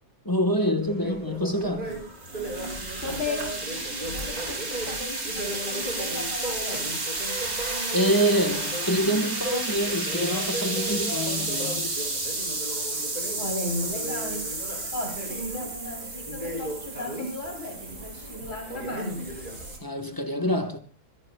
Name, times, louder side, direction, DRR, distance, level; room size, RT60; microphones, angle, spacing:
voice 1, 0.2-2.0 7.9-12.0 19.8-20.8, equal, 15° left, 1.1 m, -26 dB
sound 1, 0.8-19.8, right 1 dB, 30° right, 6.8 m, -37 dB
sound 2, 1.6-19.8, right 2 dB, 60° right, 4.0 m, -32 dB
voice 2, 3.0-7.0 13.4-19.3, left 2 dB, 50° left, 4.0 m, -36 dB
26.0 x 16.5 x 2.3 m
omnidirectional pair, 1.7 m